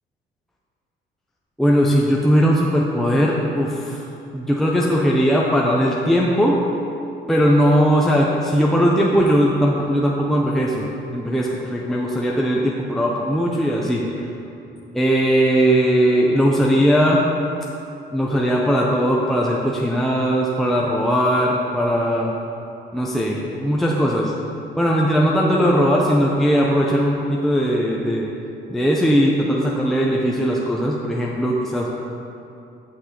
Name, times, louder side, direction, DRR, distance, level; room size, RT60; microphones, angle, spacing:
voice 1, 1.6-4.0 4.3-6.6 7.3-10.9 11.1-14.0 14.9-17.2 18.1-22.3 22.9-24.3 24.8-28.3 28.7-31.9, equal, ahead, -3 dB, 0.6 m, -19 dB
8.1 x 5.7 x 2.9 m, 2.7 s
cardioid pair, 90°, 20 cm